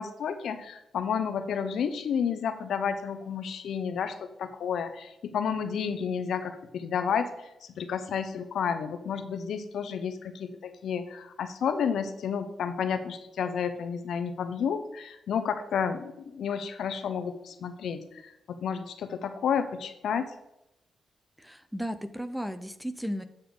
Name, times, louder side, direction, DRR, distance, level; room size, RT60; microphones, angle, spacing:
voice 1, 0.0-7.3 7.7-20.3, left 7 dB, 80° left, 9 dB, 0.8 m, -31 dB
voice 2, 21.4-23.2, equal, 5° right, 10 dB, 0.5 m, -35 dB
8.8 x 6.7 x 3.8 m, 0.87 s
cardioid pair, 105°, 0 cm